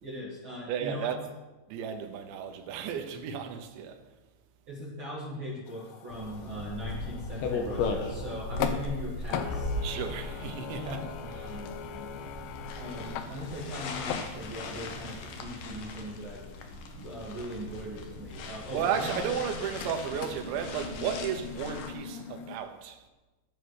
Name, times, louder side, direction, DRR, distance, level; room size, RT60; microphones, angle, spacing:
voice 1, 0.0-1.2 4.7-9.8 10.8-12.0 12.7-16.4 17.0-19.2, equal, 40° right, 1.8 m, -40 dB
voice 2, 0.7-1.2 1.7-4.0 9.8-11.0 18.7-23.0, right 8 dB, 85° right, 3.3 m, -33 dB
sound 1, 5.7-9.0 9.3-14.8 15.1-15.2 19.1-22.6, left 7 dB, 85° left, 2.0 m, -40 dB
sound 2, 6.1-21.9, left 3 dB, 70° left, 2.2 m, -38 dB
16.0 x 6.9 x 4.8 m
omnidirectional pair, 5.1 m